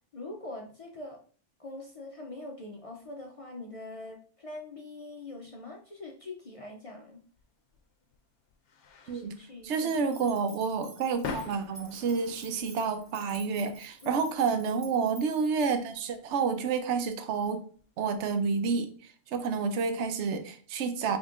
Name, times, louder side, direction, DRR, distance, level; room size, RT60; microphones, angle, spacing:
voice 1, 0.1-1.2 1.6-7.2 9.1-9.9 14.0-14.2, left 2 dB, 40° left, 1 dB, 0.5 m, -43 dB
sound 1, 7.3-18.6, left 4 dB, 70° left, 0.9 m, -47 dB
voice 2, 9.6-17.6 18.0-18.9 19.3-21.2, right 5 dB, 70° right, 8 dB, 0.9 m, -29 dB
sound 2, 9.9-15.7, right 2 dB, 35° right, 1.0 m, -51 dB
5.2 x 3.5 x 2.4 m, 0.43 s
omnidirectional pair, 1.3 m